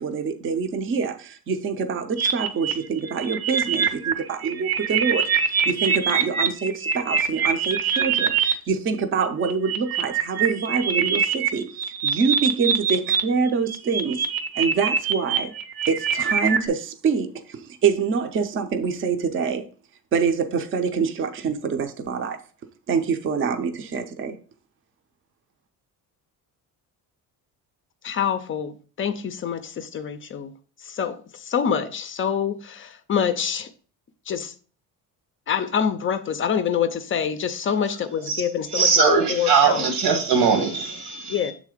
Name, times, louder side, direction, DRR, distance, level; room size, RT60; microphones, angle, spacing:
voice 1, 0.0-14.3 14.6-15.5 15.9-19.7 20.1-22.4 22.9-24.4, right 5 dB, 35° right, 0.6 m, -25 dB
sound 1, 2.2-8.5 9.2-13.2 13.5-16.7, right 6 dB, 75° right, 0.9 m, -24 dB
voice 2, 28.0-30.5 30.8-33.7 34.3-34.5 35.5-39.9 41.3-41.5, left 7 dB, 35° left, 0.4 m, -26 dB
voice 3, 38.7-41.5, right 5 dB, 90° right, 1.7 m, -20 dB
7.2 x 3.8 x 4.9 m
cardioid pair, 180°, 37 cm